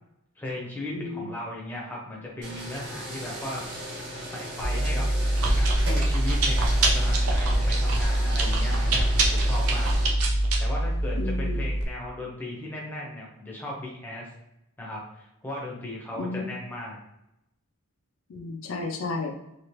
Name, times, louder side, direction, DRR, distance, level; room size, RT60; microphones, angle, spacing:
voice 1, 0.4-4.0 4.3-5.1 5.4-14.3 14.8-17.0, left 1 dB, 10° left, -3 dB, 0.6 m, -37 dB
voice 2, 0.9-1.3 11.2-11.7 16.2-16.5 18.3-19.3, left 3 dB, 60° left, 3 dB, 0.4 m, -32 dB
sound 1, 2.4-10.1, right 1 dB, 50° right, 1.1 m, -38 dB
Chewing mastication, 4.6-11.8, right 1 dB, 75° right, 0.6 m, -23 dB
2.9 x 2.8 x 3.0 m, 0.86 s
head